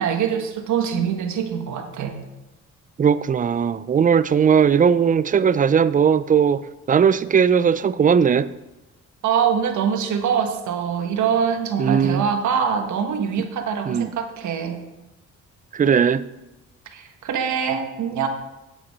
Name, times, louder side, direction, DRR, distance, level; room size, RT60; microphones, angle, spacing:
voice 1, 0.0-2.2 9.2-14.8 16.9-18.3, right 7 dB, 75° right, 1.4 m, -24 dB
voice 2, 3.0-8.5 11.8-12.2 13.9-14.1 15.7-16.2, right 7 dB, 25° right, 0.4 m, -18 dB
8.6 x 7.9 x 5.5 m
cardioid pair, 90°, 30 cm